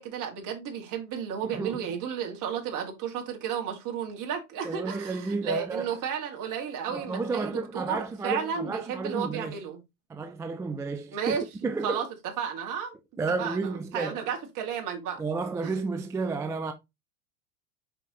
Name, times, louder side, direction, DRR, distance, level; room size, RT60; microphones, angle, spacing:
voice 1, 0.0-9.8 11.1-11.4 11.8-12.0 12.4-13.0 13.4-15.2 15.6-15.7, right 7 dB, 45° right, 2.7 m, -33 dB
voice 2, 1.4-1.9 4.6-6.0 6.9-9.6 10.1-11.4 11.6-12.0 13.2-14.2 15.2-16.7, right 3 dB, 10° right, 0.3 m, -32 dB
5.7 x 5.5 x 3.1 m
hypercardioid pair, 105°, 45 cm